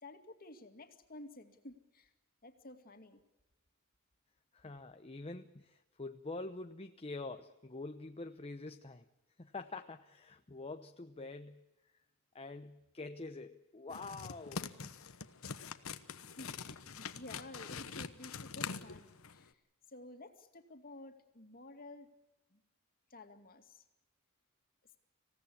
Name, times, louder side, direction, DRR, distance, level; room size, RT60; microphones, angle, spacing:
voice 1, 0.0-2.1 2.4-3.2 16.2-19.5 19.9-22.1 22.5-22.6 23.1-23.8, left 2 dB, 45° left, 2.4 m, -52 dB
voice 2, 4.5-9.1 9.4-11.6 12.3-14.9, left 3 dB, 30° left, 0.8 m, -46 dB
sound 1, 13.9-19.5, left 5 dB, 80° left, 1.2 m, -44 dB
26.5 x 17.0 x 8.5 m
head